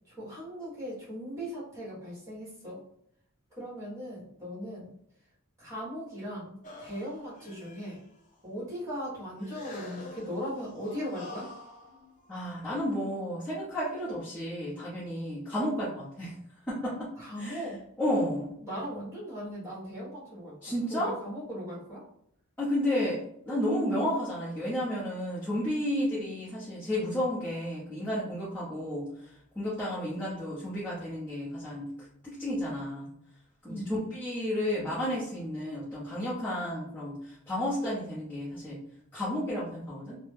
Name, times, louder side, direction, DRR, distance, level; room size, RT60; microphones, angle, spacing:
voice 1, 0.2-2.8 3.5-4.9 5.6-8.0 8.4-11.5 17.2-17.8 18.6-22.0 33.6-33.9, equal, 15° right, -7 dB, 1.4 m, -38 dB
sound 1, 6.6-8.4 9.4-12.8, left 2 dB, 35° left, 0.5 m, -47 dB
voice 2, 12.3-16.3 16.7-17.1 17.4-18.5 20.6-21.1 22.6-29.3 29.5-31.9 32.2-33.1 33.6-38.8 39.1-40.2, left 1 dB, 10° left, -11 dB, 0.8 m, -32 dB
2.8 x 2.1 x 3.3 m, 0.71 s
head